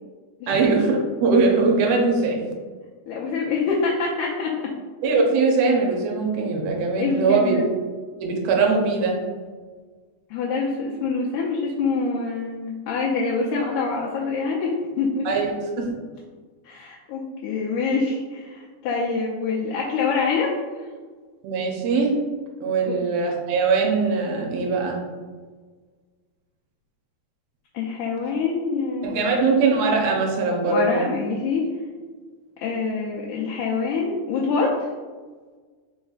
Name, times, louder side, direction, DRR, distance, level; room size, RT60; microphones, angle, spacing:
voice 1, 0.5-2.4 5.0-7.6 8.2-9.2 15.2-15.5 15.8-15.9 21.4-22.1 22.6-25.0 29.0-31.0, right 4 dB, 75° right, 0 dB, 1.6 m, -21 dB
voice 2, 3.1-4.5 7.0-7.7 10.3-15.4 16.7-20.5 22.8-23.0 27.7-29.3 30.7-31.7 32.6-34.7, left 4 dB, 80° left, -4 dB, 2.0 m, -25 dB
4.4 x 4.1 x 2.4 m, 1.5 s
omnidirectional pair, 3.6 m